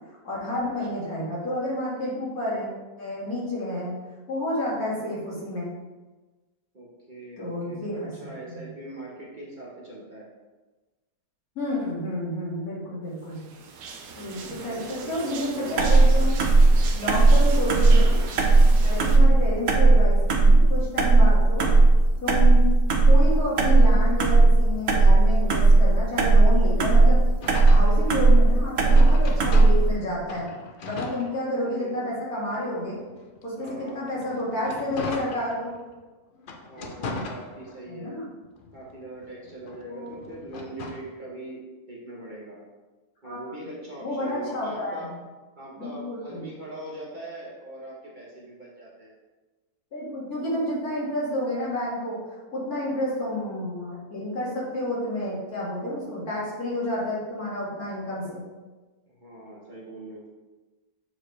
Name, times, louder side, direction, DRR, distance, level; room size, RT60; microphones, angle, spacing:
voice 1, 0.2-2.7 3.0-4.0 4.3-5.7 7.4-8.1 8.5-8.7 11.6-13.4 14.2-16.4 16.9-18.2 18.8-21.7 22.2-22.7 23.1-27.2 27.7-30.5 30.8-33.0 33.4-35.8 37.9-38.2 39.8-40.2 43.2-43.4 44.0-45.1 45.8-46.5 49.9-52.2 52.5-58.4, left 1 dB, 70° left, -7 dB, 2.6 m, -30 dB
voice 2, 6.7-10.3 14.4-15.9 17.4-17.7 18.8-19.1 31.6-32.0 33.5-34.0 36.7-38.2 38.7-42.6 43.2-45.1 45.6-49.1 52.9-53.2 59.1-60.3, right 1 dB, 35° right, -5 dB, 1.2 m, -41 dB
sound 1, 13.3-19.2, right 5 dB, 85° right, 1.3 m, -39 dB
sound 2, 15.8-29.9, right 2 dB, 55° right, 0.9 m, -17 dB
sound 3, 27.4-30.0 30.3-31.9 32.5-35.9 36.4-38.0 38.4-41.1, left 3 dB, 55° left, 0.6 m, -38 dB
7.5 x 4.5 x 3.3 m, 1.2 s
omnidirectional pair, 1.6 m